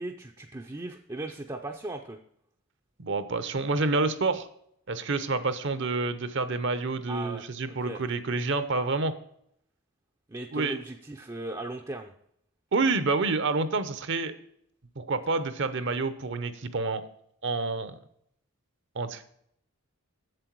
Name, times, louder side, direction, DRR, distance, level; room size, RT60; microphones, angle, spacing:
voice 1, 0.0-2.2 7.1-8.0 10.3-12.1, right 2 dB, 15° right, 2 dB, 0.5 m, -37 dB
voice 2, 3.0-4.5 4.9-9.1 10.5-10.8 12.7-14.3 15.0-17.0 17.4-18.0 19.0-19.2, right 3 dB, 55° right, 12 dB, 0.7 m, -28 dB
7.7 x 7.6 x 4.6 m, 0.69 s
head